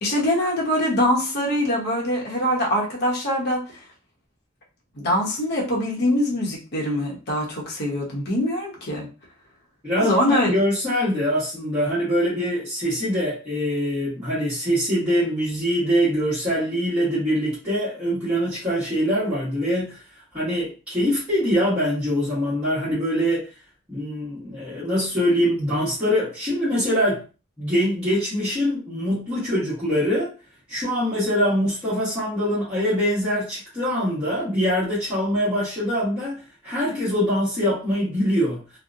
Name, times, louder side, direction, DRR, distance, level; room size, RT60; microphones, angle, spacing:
voice 1, 0.0-3.8 4.9-9.1 9.9-10.5, left 1 dB, 50° left, -2 dB, 0.9 m, -23 dB
voice 2, 9.8-20.0 20.3-23.5 23.9-27.2 27.6-30.3 30.7-38.6, equal, 5° right, -13 dB, 1.1 m, -23 dB
2.7 x 2.1 x 2.5 m, 0.34 s
head